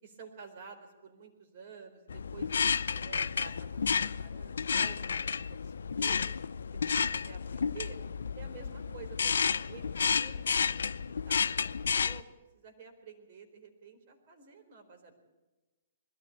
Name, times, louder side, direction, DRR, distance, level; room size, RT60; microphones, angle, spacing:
voice 1, 0.0-2.6 3.0-3.8 4.2-6.3 7.0-8.0 8.4-10.7 11.3-15.1, right 6 dB, 50° right, 4 dB, 4.3 m, -50 dB
sound 1, 2.1-12.2, left 6 dB, 80° left, 0.6 m, -31 dB
21.5 x 14.0 x 8.7 m, 1.1 s
hypercardioid pair, 135°, 0 cm